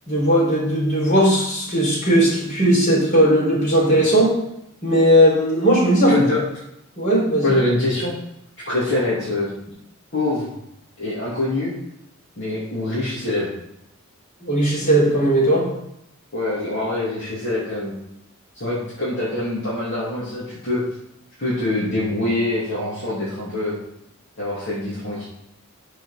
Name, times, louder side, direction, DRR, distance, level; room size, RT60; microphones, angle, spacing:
voice 1, 0.1-4.3 4.8-6.2 7.0-7.6 14.4-15.7, equal, 35° left, -5 dB, 4.3 m, -17 dB
voice 2, 6.1-6.4 7.4-8.1 8.7-9.5 10.1-10.5 11.0-11.7 12.4-13.5 16.3-17.9 18.5-20.8 21.4-23.7 24.4-25.2, left 2 dB, 55° left, -9 dB, 2.8 m, -24 dB
12.0 x 4.9 x 5.0 m, 0.81 s
head